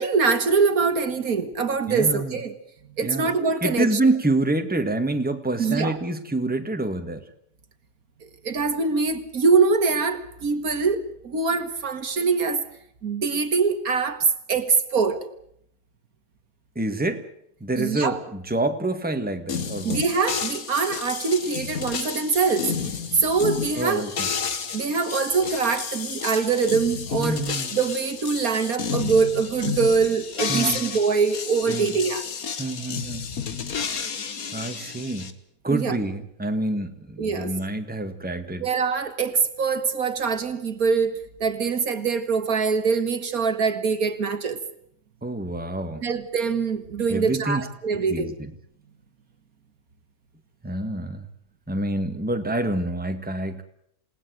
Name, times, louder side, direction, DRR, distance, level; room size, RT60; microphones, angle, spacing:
voice 1, 0.0-2.5 3.0-3.9 5.6-6.0 8.2-12.6 13.0-15.3 17.8-18.2 19.8-22.7 23.1-24.0 24.7-27.4 27.7-32.3 35.7-36.0 37.2-37.5 38.6-44.6 46.0-48.3, right 5 dB, 70° right, 2.1 m, -23 dB
voice 2, 1.9-2.3 3.0-3.3 3.6-7.3 16.7-17.2 17.6-20.0 23.7-24.3 27.2-27.7 30.5-30.9 31.7-32.0 32.6-33.3 34.5-35.3 35.6-38.6 45.2-46.1 47.1-47.7 47.9-48.5 50.6-51.3 51.7-53.6, right 2 dB, 5° right, 1.7 m, -27 dB
sound 1, 19.5-35.3, left 6 dB, 70° left, 2.0 m, -31 dB
28.0 x 18.5 x 7.9 m
omnidirectional pair, 1.6 m